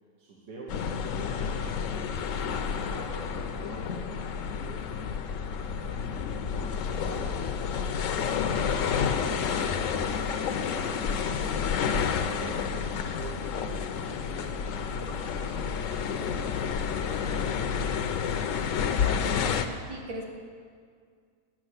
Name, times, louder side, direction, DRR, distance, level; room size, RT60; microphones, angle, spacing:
voice 1, 0.2-1.6 2.0-7.5 7.9-8.3 8.6-10.5 10.7-15.3 15.6-18.5, right 3 dB, 80° right, -4 dB, 1.8 m, -47 dB
sound 1, 0.7-19.7, left 6 dB, 65° left, 0.9 m, -30 dB
voice 2, 8.3-8.7 19.9-20.2, equal, 55° right, 0 dB, 1.7 m, -38 dB
10.5 x 6.5 x 8.1 m, 2.1 s
omnidirectional pair, 1.7 m